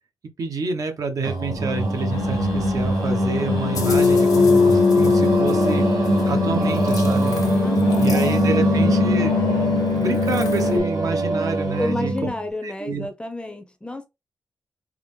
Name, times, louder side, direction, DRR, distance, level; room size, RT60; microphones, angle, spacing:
voice 1, 0.4-5.9 6.3-7.4 8.0-9.7 10.0-12.3 12.6-13.1, right 4 dB, 65° right, 0.9 m, -28 dB
Singing, 1.2-12.4, equal, 90° right, 0.9 m, -22 dB
sound 1, 2.1-10.8, left 5 dB, 70° left, 0.9 m, -23 dB
voice 2, 7.6-8.7 11.8-14.0, left 2 dB, 15° left, 0.6 m, -31 dB
3.6 x 2.1 x 3.1 m
cardioid pair, 80°, 6 cm